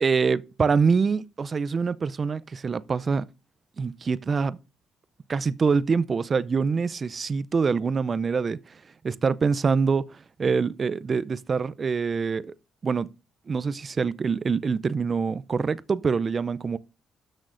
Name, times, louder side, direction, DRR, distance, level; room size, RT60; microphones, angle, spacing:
voice 1, 0.0-3.2 3.8-4.6 5.3-8.6 9.0-10.0 10.4-12.5 12.8-13.1 13.5-16.8, right 5 dB, 40° right, 0.5 m, -25 dB
12.5 x 6.3 x 2.6 m
supercardioid pair, 60°, 0 cm